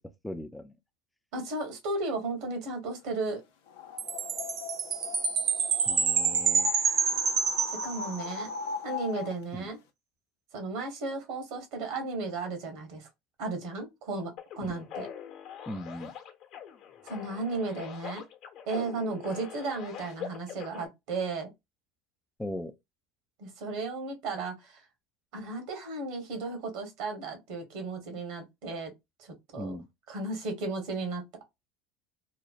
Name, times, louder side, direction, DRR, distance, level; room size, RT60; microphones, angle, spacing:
voice 1, 0.2-0.7 5.9-6.7 9.5-9.7 14.6-14.8 15.7-16.1 22.4-22.7 29.6-29.9, left 1 dB, 5° left, 0.4 m, -38 dB
voice 2, 1.3-3.4 7.7-8.5 8.8-9.8 10.5-13.1 13.4-15.1 17.0-18.2 18.7-21.5 23.4-24.8 25.3-28.9 29.2-29.8 30.1-31.2, right 3 dB, 65° right, 1.1 m, -34 dB
sound 1, 3.7-9.4, left 6 dB, 80° left, 0.6 m, -40 dB
Chime, 4.0-8.5, right 6 dB, 45° right, 0.7 m, -28 dB
sound 2, 14.4-20.9, left 9 dB, 55° left, 0.9 m, -43 dB
3.0 x 2.1 x 2.4 m
hypercardioid pair, 85°, 0 cm